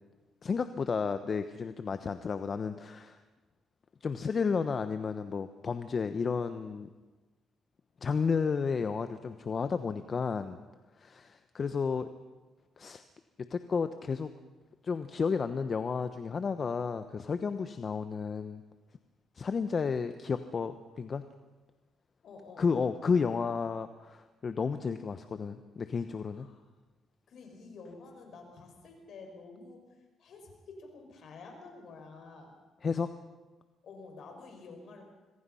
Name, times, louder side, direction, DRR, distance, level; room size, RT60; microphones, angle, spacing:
voice 1, 0.4-3.2 4.0-6.9 8.0-10.6 11.0-12.1 12.8-13.0 13.5-14.3 14.8-18.6 19.4-21.2 22.6-26.5 32.8-33.1, left 5 dB, 40° left, 10 dB, 1.0 m, -32 dB
voice 2, 22.2-22.7 26.3-26.6 27.3-32.5 33.8-35.0, left 3 dB, 65° left, 3 dB, 6.3 m, -50 dB
26.0 x 21.5 x 5.7 m, 1.2 s
cardioid pair, 90°, 0 cm